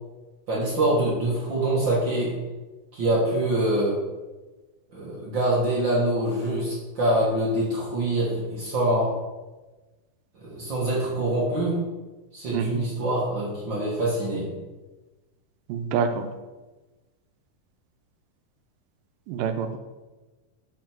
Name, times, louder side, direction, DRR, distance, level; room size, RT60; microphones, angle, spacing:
voice 1, 0.5-2.3 2.9-3.9 4.9-9.1 10.4-11.8 12.3-14.5, right 1 dB, 50° right, -5 dB, 1.5 m, -25 dB
voice 2, 12.5-12.8 15.7-16.3 19.3-19.8, right 6 dB, 85° right, 7 dB, 2.2 m, -26 dB
7.6 x 4.8 x 4.5 m, 1.2 s
omnidirectional pair, 3.9 m